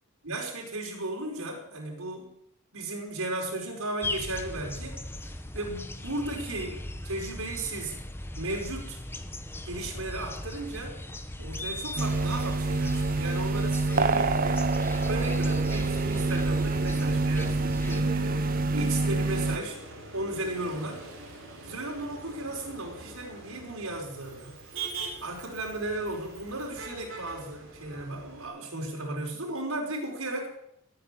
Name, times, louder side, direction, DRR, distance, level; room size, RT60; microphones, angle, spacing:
voice 1, 0.2-2.3 2.7-5.0 5.5-8.0 8.4-9.0 9.7-11.0 11.4-14.6 15.1-19.8 20.1-21.0 21.6-24.5 25.2-30.5, right 2 dB, 85° right, 0 dB, 5.2 m, -35 dB
sound 1, 4.0-18.0, left 1 dB, 10° left, 1.0 m, -39 dB
sound 2, 12.0-19.6, right 3 dB, 40° right, 0.7 m, -26 dB
Motor vehicle (road), 12.8-28.5, right 3 dB, 60° right, 4.7 m, -45 dB
17.5 x 8.5 x 8.7 m, 0.74 s
head